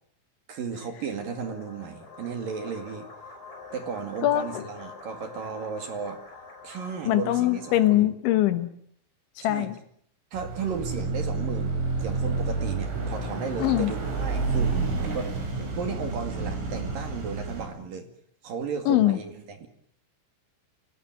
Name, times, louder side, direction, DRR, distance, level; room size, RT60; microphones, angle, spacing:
voice 1, 0.5-3.1 3.7-6.2 6.6-8.1 9.4-9.7 10.3-18.1 18.4-19.7, right 6 dB, 50° right, 7 dB, 3.4 m, -35 dB
sound 1, 1.2-7.9, left 4 dB, 50° left, 8.3 m, -45 dB
voice 2, 4.2-4.6 7.1-8.7 9.4-9.8 13.6-13.9 18.9-19.2, left 14 dB, 75° left, 11 dB, 3.4 m, -22 dB
Car passing by / Accelerating revving vroom, 10.4-17.7, right 3 dB, 75° right, 8.3 m, -29 dB
26.5 x 18.0 x 9.2 m, 0.66 s
omnidirectional pair, 5.7 m